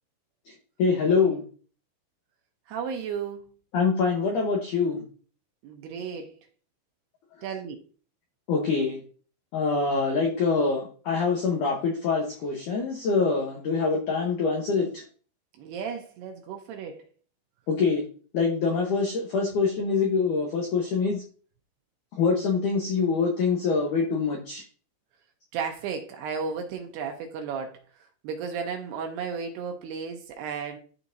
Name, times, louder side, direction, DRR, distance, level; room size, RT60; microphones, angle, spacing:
voice 1, 0.8-1.4 3.7-5.0 8.5-9.0 9.5-15.0 17.7-18.0 18.3-21.2 22.1-24.6, left 4 dB, 80° left, 0 dB, 1.8 m, -25 dB
voice 2, 2.7-3.4 5.6-6.3 7.4-7.8 15.6-17.0 25.5-27.8 28.2-30.8, right 6 dB, 75° right, 3 dB, 2.5 m, -34 dB
12.0 x 4.3 x 2.6 m, 0.40 s
omnidirectional pair, 5.2 m